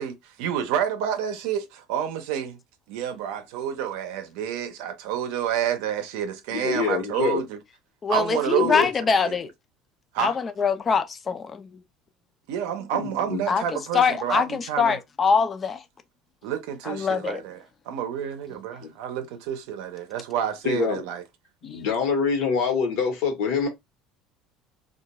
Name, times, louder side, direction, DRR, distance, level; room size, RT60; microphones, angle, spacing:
voice 1, 0.0-2.6 2.9-7.6 8.1-8.9 9.2-9.4 10.1-10.3 12.5-15.0 16.4-21.2, right 9 dB, 85° right, 0.6 m, -29 dB
voice 2, 6.5-7.4 8.6-8.9 12.9-13.4 20.6-21.0 21.6-23.7, left 5 dB, 70° left, 1.0 m, -25 dB
voice 3, 8.0-9.5 10.2-11.8 13.5-13.6 13.9-15.8 16.8-17.4 21.7-21.9, left 5 dB, 25° left, 0.3 m, -24 dB
2.3 x 2.3 x 2.9 m
cardioid pair, 145°, 0 cm